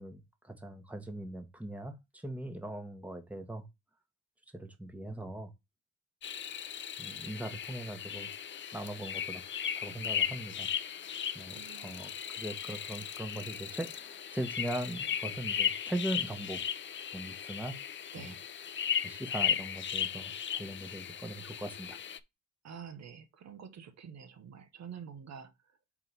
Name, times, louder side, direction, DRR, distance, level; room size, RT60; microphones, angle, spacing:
voice 1, 0.0-3.6 4.5-5.5 7.0-8.3 8.7-9.4 9.8-10.7 11.3-16.6 17.1-17.8 18.2-18.3 19.0-22.0, right 1 dB, 5° right, 1.3 m, -40 dB
sound 1, 6.2-22.2, left 8 dB, 40° left, 0.5 m, -36 dB
voice 2, 11.5-12.0 18.1-18.4 22.6-25.8, right 7 dB, 60° right, 1.1 m, -48 dB
4.8 x 3.7 x 5.4 m
cardioid pair, 90°, 30 cm